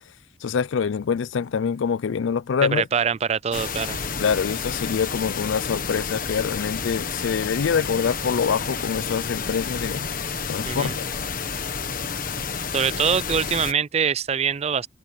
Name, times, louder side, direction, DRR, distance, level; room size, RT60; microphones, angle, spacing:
voice 1, 0.4-2.9 4.2-10.1 10.5-11.3, left 6 dB, 85° left, 0.4 m, -25 dB
voice 2, 2.7-4.0 10.7-11.0 12.7-14.9, right 7 dB, 35° right, 0.4 m, -24 dB
sound 1, 3.5-13.7, left 5 dB, 45° left, 1.3 m, -30 dB
head